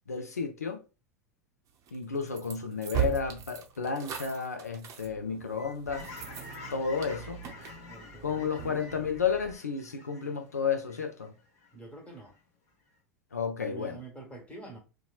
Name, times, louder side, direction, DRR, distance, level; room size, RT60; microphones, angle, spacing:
voice 1, 0.1-0.8 1.9-6.1 6.7-7.4 8.2-11.3 13.3-14.0, left 6 dB, 90° left, 0.5 m, -32 dB
sound 1, 1.9-9.6, right 11 dB, 40° right, 0.5 m, -39 dB
Fowl / Chirp tweet, 5.9-11.7 12.1-12.4, left 4 dB, 65° left, 0.9 m, -49 dB
voice 2, 7.9-9.1 11.7-12.3 13.6-14.8, right 3 dB, 15° left, 1.2 m, -47 dB
2.9 x 2.2 x 2.3 m
hypercardioid pair, 85°, 8 cm